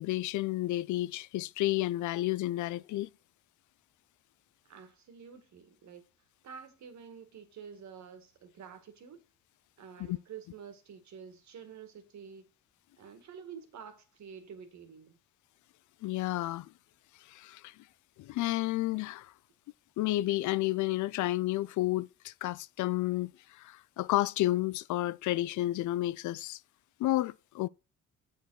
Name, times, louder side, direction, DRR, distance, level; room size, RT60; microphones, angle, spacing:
voice 1, 0.0-3.1 10.1-10.2 16.0-16.7 17.3-17.7 18.2-19.3 20.0-26.6 27.0-27.7, left 16 dB, 75° left, 0.4 m, -31 dB
voice 2, 4.7-6.0 6.4-9.2 9.8-12.4 13.0-15.2, right 7 dB, 65° right, 2.0 m, -49 dB
8.0 x 5.0 x 6.3 m
cardioid pair, 90°, 30 cm